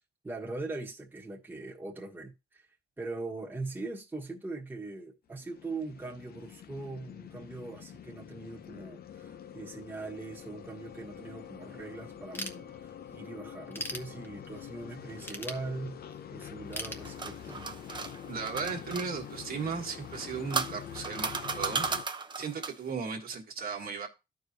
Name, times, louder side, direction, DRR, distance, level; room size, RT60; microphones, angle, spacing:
voice 1, 0.2-2.7 3.0-16.0 16.3-17.7, right 3 dB, 10° right, 1.4 m, -41 dB
sound 1, 5.3-22.0, left 9 dB, 60° left, 0.7 m, -46 dB
Ratchet pawl / Tools, 12.3-13.1 13.5-14.7 15.2-16.2 16.7-17.7, equal, 10° left, 1.1 m, -40 dB
sound 2, 16.8-19.1 20.0-22.9, right 4 dB, 25° right, 0.7 m, -35 dB
voice 2, 18.3-21.9 22.4-24.1, right 5 dB, 55° right, 1.6 m, -36 dB
13.0 x 4.8 x 2.7 m
cardioid pair, 135°, 18 cm